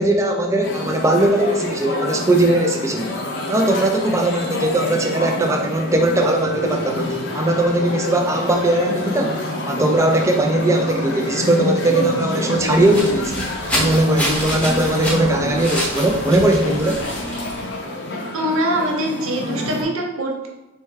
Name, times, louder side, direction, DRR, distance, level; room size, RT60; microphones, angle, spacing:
voice 1, 0.0-3.1 3.5-13.5 13.7-17.0, right 1 dB, 15° right, 3 dB, 0.4 m, -19 dB
sound 1, 0.6-19.8, left 1 dB, 50° left, 0.7 m, -28 dB
sound 2, 12.5-17.6, equal, 5° left, 0.8 m, -28 dB
voice 2, 18.3-20.5, right 1 dB, 65° right, 0 dB, 0.7 m, -23 dB
4.3 x 3.4 x 3.2 m, 1.0 s
head